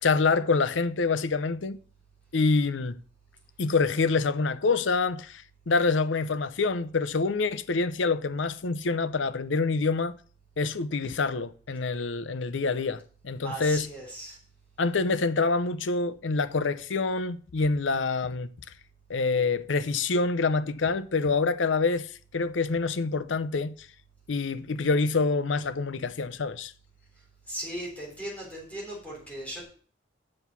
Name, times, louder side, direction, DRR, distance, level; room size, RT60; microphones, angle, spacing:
voice 1, 0.0-1.8 2.3-3.0 3.6-10.1 10.6-13.9 14.8-18.5 19.1-23.9 24.3-26.7, left 4 dB, 75° left, 0.7 m, -26 dB
voice 2, 13.4-14.4 27.5-29.6, right 1 dB, 10° left, 3.5 m, -37 dB
7.8 x 6.1 x 6.9 m
head